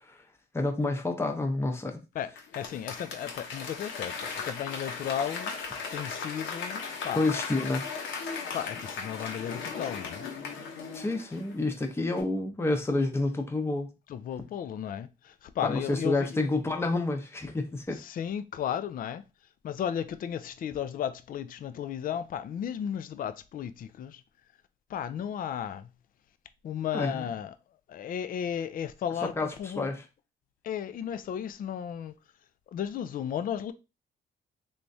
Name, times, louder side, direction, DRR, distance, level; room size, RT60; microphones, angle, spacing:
voice 1, 0.5-2.0 7.2-7.9 10.9-13.9 15.6-18.0 26.9-27.3 29.2-30.0, left 2 dB, 10° left, 0.7 m, -29 dB
voice 2, 2.1-5.5 5.9-7.2 8.5-10.3 14.1-16.4 17.9-19.2 19.6-24.2 24.9-25.9 26.6-27.5 27.9-29.9 30.6-32.2 32.7-33.7, left 9 dB, 45° left, 0.4 m, -34 dB
Applause / Crowd, 2.4-11.8 12.2-12.3, left 5 dB, 75° left, 0.9 m, -37 dB
3.5 x 3.0 x 2.6 m
cardioid pair, 90°, 20 cm